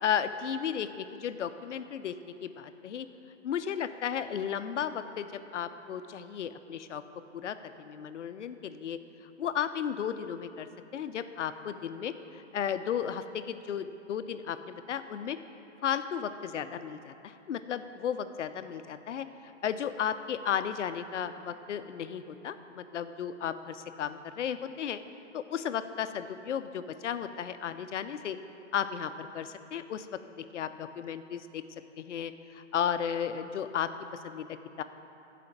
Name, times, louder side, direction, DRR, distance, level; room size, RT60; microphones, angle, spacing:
voice 1, 0.0-2.1 2.4-3.1 3.4-7.0 7.3-9.0 9.4-15.4 15.8-25.0 25.3-28.4 28.7-30.1 30.3-31.6 32.0-33.9 34.2-34.5 34.8-34.9, left 8 dB, 70° left, 10 dB, 0.7 m, -34 dB
13.0 x 5.1 x 7.1 m, 2.9 s
hypercardioid pair, 175°, 37 cm